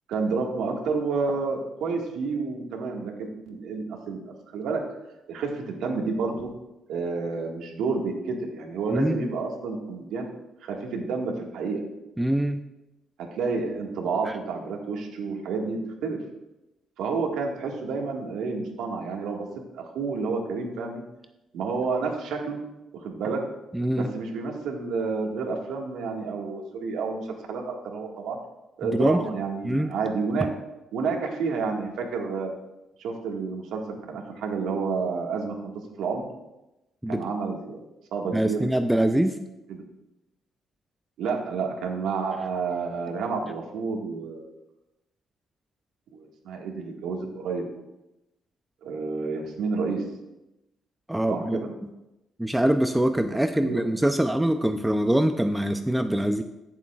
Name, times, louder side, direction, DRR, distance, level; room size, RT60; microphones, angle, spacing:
voice 1, 0.1-4.2 4.5-4.8 5.3-6.5 6.9-10.3 10.6-11.8 13.2-16.2 17.0-19.5 19.8-21.0 21.5-22.6 23.0-23.4 23.9-27.2 27.5-28.4 28.8-30.5 30.9-32.5 33.0-33.8 34.1-35.6 36.0-36.3 37.1-37.8 38.1-38.6 39.7-39.8 41.2-44.5 46.1-47.6 48.8-50.0 51.3-51.7 53.5-53.9, right 4 dB, 85° right, 1 dB, 1.7 m, -30 dB
voice 2, 8.9-9.3 12.2-12.6 14.3-14.4 23.7-24.1 28.8-29.2 29.6-29.9 37.0-37.2 38.3-39.4 51.1-51.9 52.4-56.4, right 1 dB, 5° right, 8 dB, 0.5 m, -24 dB
15.0 x 7.2 x 2.4 m, 0.93 s
cardioid pair, 90°, 0 cm